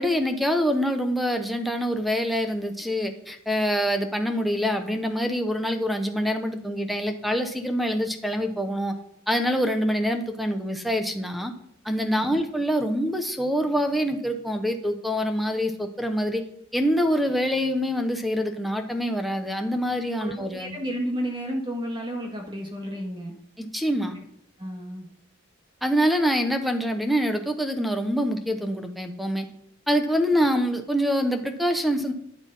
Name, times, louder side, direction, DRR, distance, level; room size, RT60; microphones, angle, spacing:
voice 1, 0.0-8.9 9.3-11.5 11.8-16.4 16.7-20.7 23.6-24.2 25.8-29.5 29.9-32.1, equal, ahead, 6 dB, 1.0 m, -25 dB
voice 2, 20.2-23.3 24.6-25.1, equal, 25° right, 1 dB, 1.7 m, -32 dB
12.5 x 9.5 x 5.5 m, 0.72 s
head